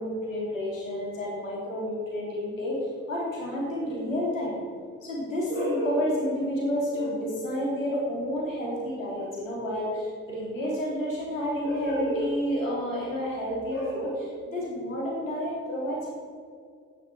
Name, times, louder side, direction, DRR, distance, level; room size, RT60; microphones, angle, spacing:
voice 1, 0.0-4.5 5.0-16.1, equal, 85° left, -3 dB, 3.0 m, -30 dB
12.0 x 9.5 x 4.7 m, 2.2 s
figure-of-eight pair, 55°, 38 cm